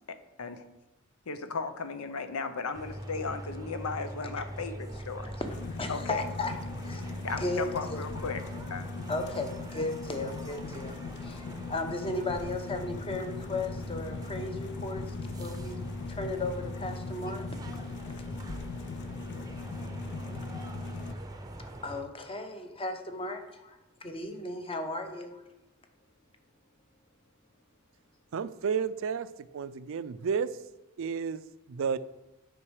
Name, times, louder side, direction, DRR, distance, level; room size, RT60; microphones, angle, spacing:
voice 1, 0.1-0.6 1.3-5.3 5.9-6.2 7.2-8.4 8.7-8.9, left 4 dB, 90° left, 10 dB, 0.7 m, -36 dB
sound 1, 2.7-22.0, right 1 dB, 15° right, 0.7 m, -41 dB
voice 2, 5.0-8.1 9.1-15.8 16.1-17.5 21.8-25.4, left 2 dB, 25° left, 6 dB, 0.9 m, -36 dB
sound 2, 5.4-21.1, left 5 dB, 55° left, 0.4 m, -41 dB
voice 3, 28.3-29.3 29.5-30.5 31.0-32.0, right 6 dB, 65° right, 14 dB, 0.4 m, -31 dB
8.7 x 5.3 x 4.8 m, 0.97 s
head